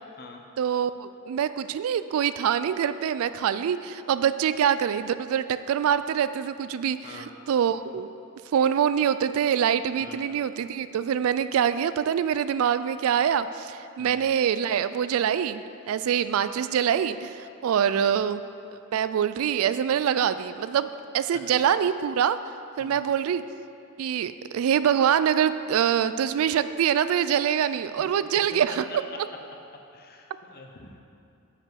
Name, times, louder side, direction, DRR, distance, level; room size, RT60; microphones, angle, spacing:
voice 1, 0.6-8.1 8.5-18.4 18.9-20.9 21.1-22.4 22.8-23.4 24.0-28.8, right 8 dB, 70° right, 13 dB, 0.3 m, -25 dB
voice 2, 22.8-23.1 28.5-29.2 29.9-31.0, left 3 dB, 45° left, 3 dB, 0.8 m, -45 dB
9.0 x 5.9 x 4.6 m, 2.5 s
head